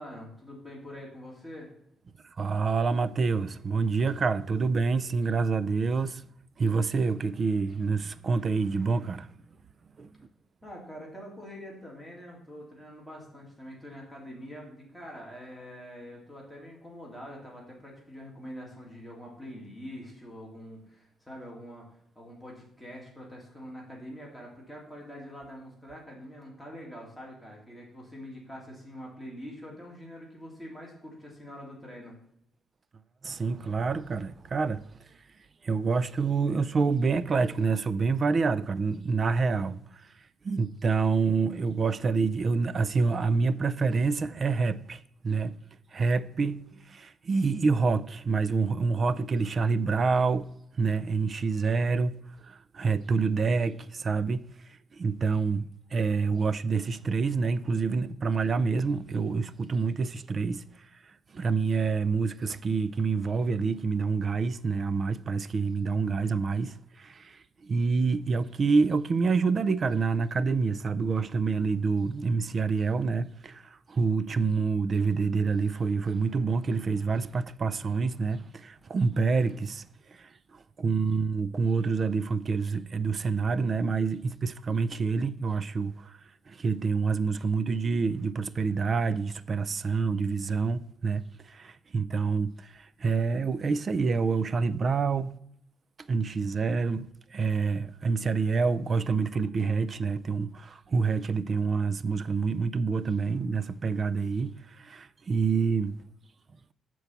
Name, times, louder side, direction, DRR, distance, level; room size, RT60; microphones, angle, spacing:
voice 1, 0.0-1.7 10.6-21.9 22.2-32.2, equal, ahead, 2.5 m, -44 dB
voice 2, 2.4-6.3 6.6-9.3 10.0-10.1 33.2-34.8 35.6-39.8 40.4-45.5 45.9-50.5 50.8-52.2 52.5-54.5 55.0-60.6 61.3-79.8 80.2-80.3 80.8-86.1 86.5-95.4 96.1-105.9, right 4 dB, 35° right, 0.4 m, -27 dB
8.0 x 4.6 x 7.0 m
cardioid pair, 140°, 0 cm